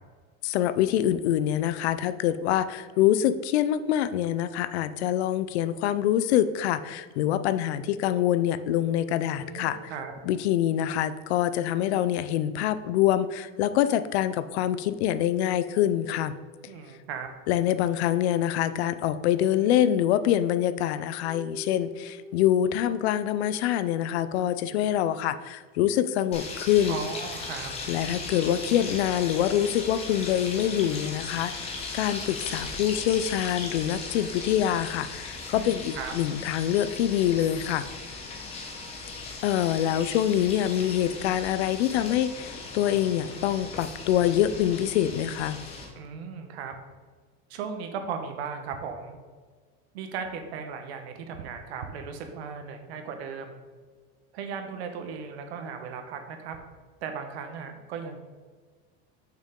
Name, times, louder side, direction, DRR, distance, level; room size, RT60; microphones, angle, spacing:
voice 1, 0.4-9.8 10.2-16.3 17.5-27.0 27.9-37.8 39.4-45.6, left 11 dB, 85° left, 13 dB, 0.6 m, -25 dB
sound 1, 7.8-11.0 14.5-17.1 21.2-25.0, left 1 dB, 10° right, 0.7 m, -47 dB
voice 2, 9.4-10.1 16.7-17.3 26.9-27.7 35.5-36.1 45.9-46.7 47.5-49.2 49.9-53.6 54.3-56.6 57.0-58.2, right 6 dB, 80° right, 6 dB, 1.2 m, -37 dB
sound 2, 26.3-45.8, left 3 dB, 20° left, 0.9 m, -38 dB
6.7 x 6.0 x 3.6 m, 1.4 s
supercardioid pair, 175°, 32 cm